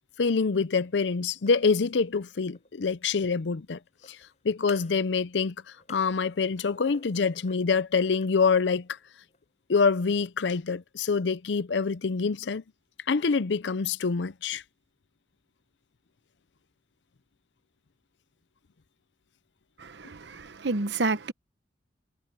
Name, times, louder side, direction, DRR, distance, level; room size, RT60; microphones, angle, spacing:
voice 1, 0.2-3.8 4.1-4.2 4.4-5.5 5.9-8.9 9.7-12.6 13.1-14.6, left 5 dB, 80° left, 0.6 m, -26 dB
sound 1, 1.3-2.7 3.9-5.1 5.4-7.7 8.1-9.4, left 4 dB, 40° left, 7.4 m, -54 dB
voice 2, 19.8-21.3, right 3 dB, 75° right, 0.9 m, -30 dB
head